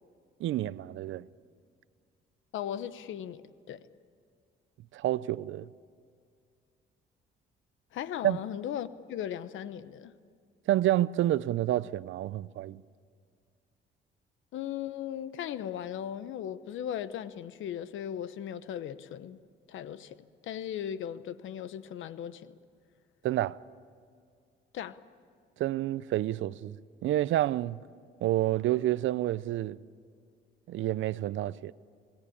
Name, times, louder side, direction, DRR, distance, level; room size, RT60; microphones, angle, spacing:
voice 1, 0.4-1.3 4.9-5.7 8.2-8.4 10.7-12.8 23.2-23.6 25.6-26.8 27.0-27.8 28.2-29.8 30.7-31.7, right 14 dB, 75° right, 0.6 m, -29 dB
voice 2, 2.5-3.4 3.7-3.9 7.9-10.2 14.5-19.4 19.7-20.2 20.4-22.6 24.7-25.0, left 10 dB, 80° left, 1.0 m, -37 dB
27.0 x 18.5 x 8.6 m
cardioid pair, 90°, 20 cm